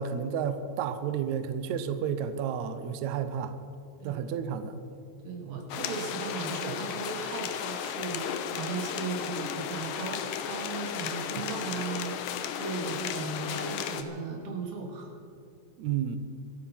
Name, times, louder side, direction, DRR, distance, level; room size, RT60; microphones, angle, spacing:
voice 1, 0.0-3.5 4.0-4.8 11.4-11.5 15.8-16.2, right 8 dB, 85° right, 10 dB, 1.6 m, -31 dB
voice 2, 5.2-15.1, right 4 dB, 65° right, 1 dB, 4.0 m, -37 dB
sound 1, 5.7-14.0, left 8 dB, 75° left, 2.4 m, -34 dB
25.5 x 8.9 x 5.9 m, 2.6 s
omnidirectional pair, 4.5 m